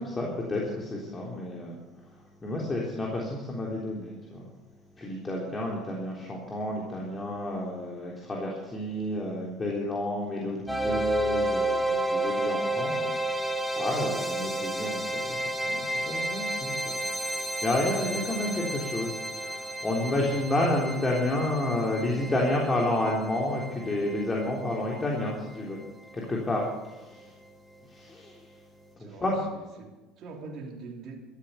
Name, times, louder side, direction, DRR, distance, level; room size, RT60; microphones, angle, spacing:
voice 1, 0.0-4.4 5.0-25.8 26.1-27.4 27.8-28.7 29.0-29.4, left 1 dB, 25° left, -3 dB, 3.5 m, -31 dB
sound 1, 10.7-25.7, right 1 dB, 5° right, 1.8 m, -31 dB
voice 2, 18.1-18.9 29.0-29.3 29.8-31.2, right 4 dB, 55° right, 2 dB, 3.1 m, -43 dB
14.0 x 11.5 x 6.8 m, 1.2 s
hypercardioid pair, 70°, 0 cm